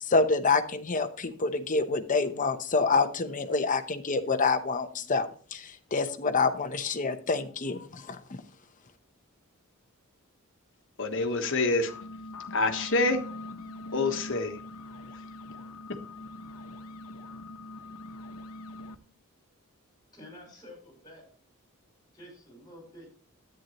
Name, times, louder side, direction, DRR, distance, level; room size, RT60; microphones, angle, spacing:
voice 1, 0.0-8.4, left 4 dB, 40° left, 8 dB, 0.8 m, -27 dB
voice 2, 11.0-11.9 12.5-13.2 13.9-14.6, left 3 dB, 65° left, 6 dB, 1.2 m, -26 dB
sound 1, 11.8-19.0, left 2 dB, 85° left, 1.0 m, -43 dB
voice 3, 20.1-21.2 22.1-23.1, left 1 dB, 20° left, 1 dB, 5.0 m, -49 dB
10.5 x 9.0 x 3.0 m, 0.42 s
head